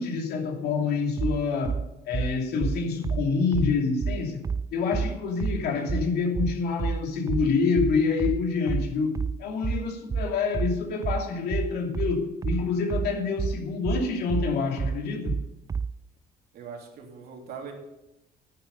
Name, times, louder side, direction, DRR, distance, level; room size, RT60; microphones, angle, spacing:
voice 1, 0.0-1.8 2.1-4.4 4.7-15.3, left 5 dB, 70° left, 2 dB, 2.8 m, -27 dB
sound 1, 1.2-16.0, right 5 dB, 20° right, 0.3 m, -29 dB
voice 2, 16.5-17.7, right 6 dB, 70° right, 1 dB, 3.1 m, -41 dB
10.5 x 10.5 x 5.6 m, 0.92 s
cardioid pair, 110°, 17 cm